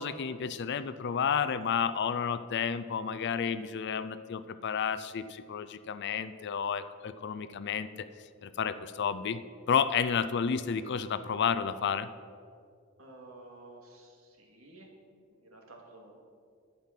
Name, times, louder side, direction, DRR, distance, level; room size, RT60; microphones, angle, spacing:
voice 1, 0.0-8.1 8.4-9.4 9.7-12.1, left 7 dB, 55° left, 13 dB, 0.4 m, -31 dB
voice 2, 13.0-14.9 15.3-16.2, right 2 dB, 75° right, 0 dB, 2.2 m, -52 dB
10.5 x 9.1 x 5.8 m, 2.3 s
head